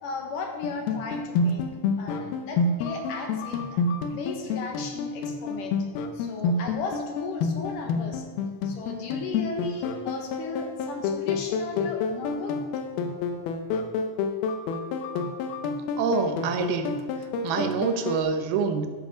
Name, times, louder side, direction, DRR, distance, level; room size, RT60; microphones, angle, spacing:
voice 1, 0.0-1.7 2.0-3.6 4.1-5.7 6.1-8.2 8.6-12.5, left 4 dB, 65° left, 2 dB, 3.0 m, -36 dB
sound 1, 0.6-18.2, left 4 dB, 90° left, 2.9 m, -29 dB
voice 2, 16.0-17.0 17.4-18.9, right 5 dB, 85° right, 7 dB, 3.0 m, -26 dB
13.0 x 11.0 x 5.1 m, 1.5 s
omnidirectional pair, 4.2 m